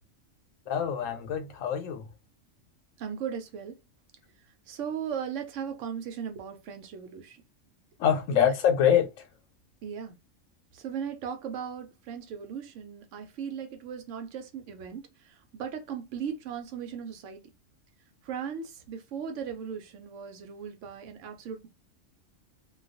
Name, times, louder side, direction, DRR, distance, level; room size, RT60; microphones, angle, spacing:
voice 1, 0.7-2.1 8.0-9.3, left 8 dB, 85° left, 1.0 m, -25 dB
voice 2, 3.0-3.8 4.7-7.4 8.4-8.5 9.8-10.2 10.7-15.0 15.5-17.4 18.2-21.7, right 7 dB, 75° right, 0.9 m, -37 dB
2.3 x 2.3 x 2.5 m
omnidirectional pair, 1.3 m